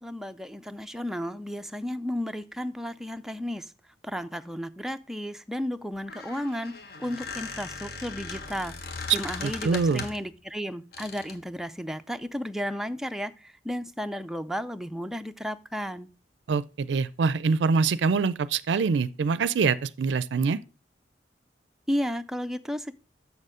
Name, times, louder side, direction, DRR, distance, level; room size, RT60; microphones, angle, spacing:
voice 1, 0.0-3.7 4.0-6.7 7.0-16.1 21.9-22.9, equal, 5° right, 0.4 m, -33 dB
Squeak, 5.9-10.3 10.9-11.4, left 4 dB, 60° left, 1.3 m, -39 dB
voice 2, 9.4-10.0 16.5-20.6, right 4 dB, 90° right, 0.4 m, -25 dB
7.0 x 6.7 x 4.9 m
head